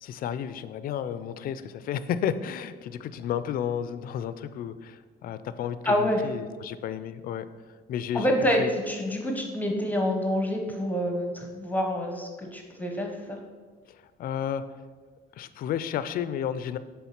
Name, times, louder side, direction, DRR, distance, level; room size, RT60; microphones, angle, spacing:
voice 1, 0.0-7.5 7.9-8.7 13.9-14.8 15.3-16.8, left 9 dB, 60° left, 13 dB, 0.4 m, -32 dB
voice 2, 5.8-6.2 8.1-13.4, equal, 10° left, 2 dB, 1.0 m, -27 dB
7.0 x 3.6 x 5.9 m, 1.5 s
cardioid pair, 110°, 17 cm